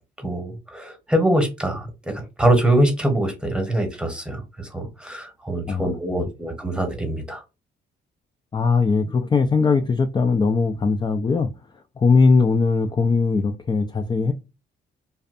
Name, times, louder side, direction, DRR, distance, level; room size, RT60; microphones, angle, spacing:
voice 1, 0.2-7.4, right 1 dB, 5° right, 1.0 m, -23 dB
voice 2, 5.7-6.3 8.5-11.5 12.0-14.3, left 4 dB, 20° left, 0.3 m, -20 dB
2.5 x 2.1 x 2.4 m
cardioid pair, 90°, 20 cm